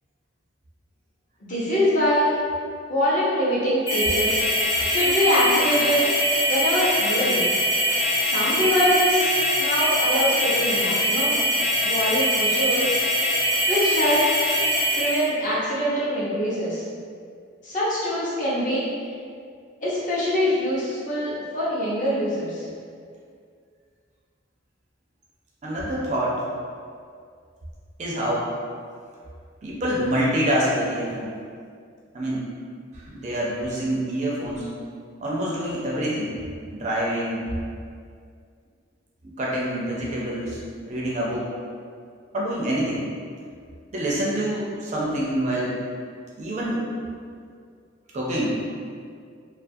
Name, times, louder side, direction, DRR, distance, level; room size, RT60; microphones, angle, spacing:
voice 1, 1.4-2.4 2.9-4.4 4.9-6.1 6.5-7.5 8.2-9.3 9.6-11.4 11.8-12.9 13.7-14.3 15.0-16.8 17.6-18.9 19.8-22.6, equal, 40° left, -8 dB, 0.6 m, -23 dB
sound 1, 3.9-15.3, equal, 75° left, 0.8 m, -23 dB
voice 2, 25.6-26.4 28.0-28.5 29.6-31.3 32.1-32.5 33.1-34.7 35.2-36.3 36.7-37.5 39.4-40.6 40.9-41.5 42.3-43.0 43.9-45.8 46.4-46.8 48.1-48.6, right 1 dB, 35° right, -5 dB, 0.4 m, -26 dB
2.3 x 2.3 x 2.5 m, 2.2 s
head